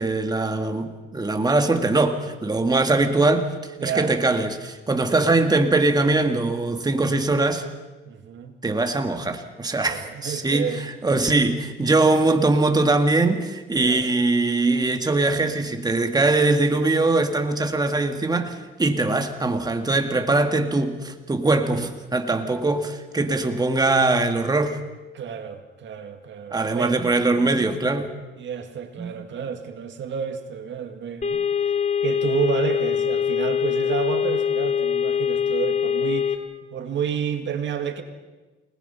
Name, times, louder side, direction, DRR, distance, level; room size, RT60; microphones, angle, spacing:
voice 1, 0.0-3.5 3.8-7.7 8.6-24.8 26.5-28.1 29.0-29.1, right 2 dB, 20° right, 2.0 m, -22 dB
voice 2, 3.8-4.1 8.1-8.6 9.8-10.9 13.7-14.1 25.1-27.0 28.4-31.8 32.0-36.4 36.7-38.0, right 7 dB, 65° right, 2.0 m, -30 dB
sound 1, 31.2-36.4, left 8 dB, 35° left, 2.4 m, -23 dB
29.0 x 19.5 x 5.7 m
cardioid pair, 90°, 20 cm